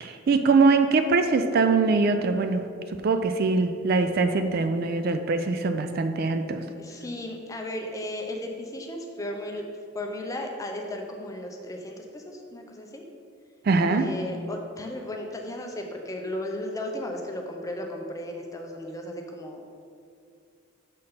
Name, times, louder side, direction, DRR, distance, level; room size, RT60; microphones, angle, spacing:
voice 1, 0.0-2.7 3.0-6.6 13.7-14.1, right 4 dB, 45° right, 8 dB, 0.3 m, -22 dB
voice 2, 6.8-9.6 9.9-13.0 13.9-19.6, left 1 dB, 15° left, 2 dB, 0.6 m, -35 dB
6.4 x 4.2 x 5.6 m, 2.3 s
head